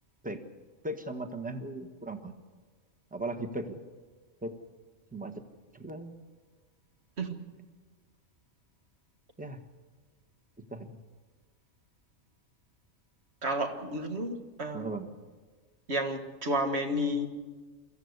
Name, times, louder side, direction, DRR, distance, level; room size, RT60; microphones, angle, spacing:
voice 1, 0.8-2.3 3.1-3.8 4.4-4.5 5.1-5.3 5.7-6.2 9.4-9.6 10.7-11.0 14.7-15.1, right 2 dB, 5° right, 6 dB, 1.3 m, -37 dB
voice 2, 13.4-14.9 15.9-17.3, equal, 55° right, 6 dB, 1.9 m, -31 dB
24.0 x 14.5 x 8.1 m, 1.4 s
omnidirectional pair, 1.4 m